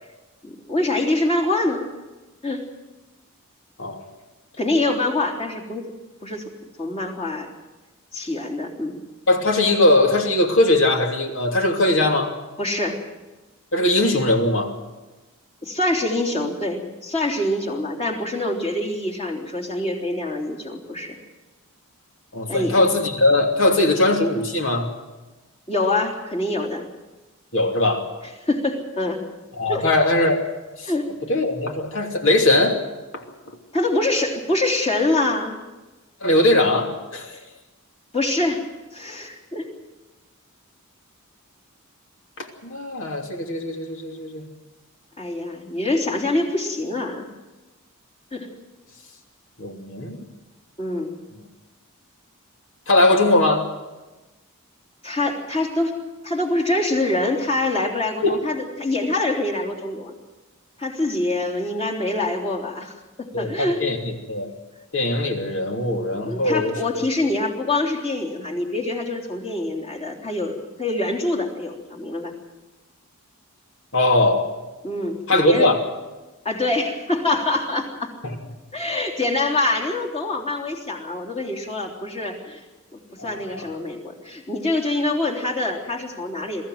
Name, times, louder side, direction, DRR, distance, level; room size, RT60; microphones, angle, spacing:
voice 1, 0.4-1.8 2.4-2.7 4.6-5.9 6.2-6.5 6.8-7.5 8.1-9.0 12.6-13.0 15.6-21.2 22.5-22.8 25.7-26.9 28.5-29.2 29.7-29.8 30.9-31.1 33.7-35.6 38.1-38.6 38.9-39.7 45.2-47.3 48.3-48.5 50.8-51.1 55.0-55.9 56.2-60.1 60.8-62.9 63.2-63.8 66.2-72.3 74.8-75.7 76.4-78.1 78.7-82.6 82.9-86.6, left 2 dB, 25° left, 0 dB, 3.3 m, -25 dB
voice 2, 9.3-12.3 13.7-14.7 22.3-24.9 27.5-28.1 29.6-30.4 30.8-30.9 31.3-32.8 36.2-37.4 42.4-44.5 49.6-50.2 52.9-53.7 58.2-58.4 63.3-64.5 64.9-66.7 73.9-74.5 75.3-75.8 78.2-78.3 83.2-83.6, left 2 dB, 60° left, 3 dB, 2.9 m, -20 dB
22.5 x 14.5 x 9.3 m, 1.1 s
head